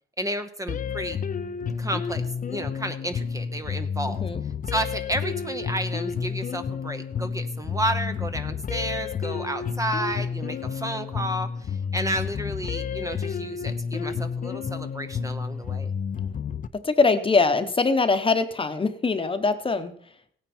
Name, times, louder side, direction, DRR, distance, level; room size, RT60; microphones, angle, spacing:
voice 1, 0.2-1.2 1.8-4.2 4.7-15.9, right 1 dB, 15° right, 8 dB, 0.9 m, -31 dB
sound 1, 0.7-16.7, left 6 dB, 45° left, 0.6 m, -30 dB
voice 2, 4.1-4.4 16.8-19.9, left 4 dB, 25° left, 9 dB, 1.1 m, -22 dB
16.5 x 9.2 x 4.4 m, 0.63 s
cardioid pair, 90°, 20 cm